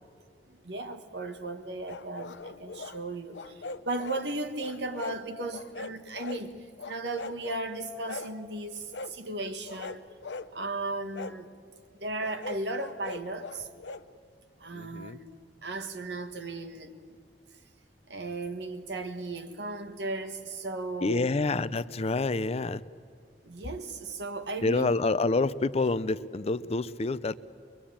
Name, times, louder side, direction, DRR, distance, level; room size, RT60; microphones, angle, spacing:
voice 1, 0.5-10.0 10.5-11.5 12.0-13.7 14.6-15.3 15.6-16.9 18.1-21.3 23.4-25.0, right 2 dB, 70° right, 1.5 m, -36 dB
sound 1, 1.9-3.0 3.3-4.2 4.6-5.2 5.5-6.5 6.8-7.6 8.1-8.4 8.9-9.1 9.6-10.5 11.1-11.4 12.2-14.0, left 3 dB, 80° left, 0.7 m, -40 dB
voice 2, 14.7-15.2 21.0-22.8 24.6-27.4, left 3 dB, 35° left, 0.5 m, -28 dB
23.0 x 22.5 x 8.7 m
head